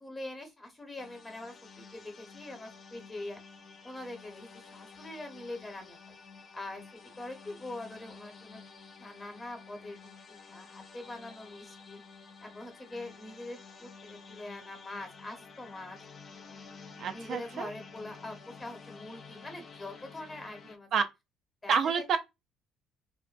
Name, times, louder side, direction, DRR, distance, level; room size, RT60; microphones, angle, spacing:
voice 1, 0.0-3.4 3.8-6.0 6.5-8.6 9.0-12.0 12.4-16.0 17.1-20.9 21.6-22.0, left 2 dB, 25° left, 1.0 m, -43 dB
sound 1, 1.0-20.8, left 5 dB, 45° left, 0.5 m, -51 dB
voice 2, 17.0-17.7 20.9-21.0 21.7-22.2, right 6 dB, 60° right, 0.4 m, -28 dB
2.5 x 2.1 x 2.4 m
hypercardioid pair, 60°, 0 cm